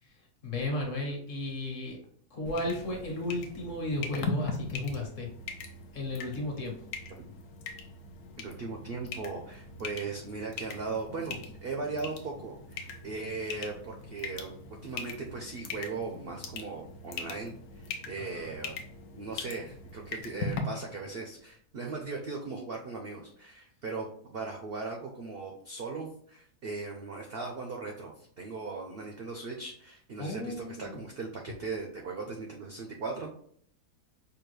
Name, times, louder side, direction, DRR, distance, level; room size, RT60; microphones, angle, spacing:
voice 1, 0.0-2.0 2.3-5.3 5.9-6.8 18.1-18.5 30.2-31.1, left 2 dB, 55° left, 0 dB, 1.3 m, -34 dB
sound 1, 2.5-20.6, left 4 dB, 70° left, 1.1 m, -41 dB
voice 2, 8.4-14.5 14.8-18.8 19.1-33.3, right 4 dB, 75° right, 1 dB, 0.5 m, -38 dB
5.1 x 2.3 x 3.1 m, 0.63 s
omnidirectional pair, 1.7 m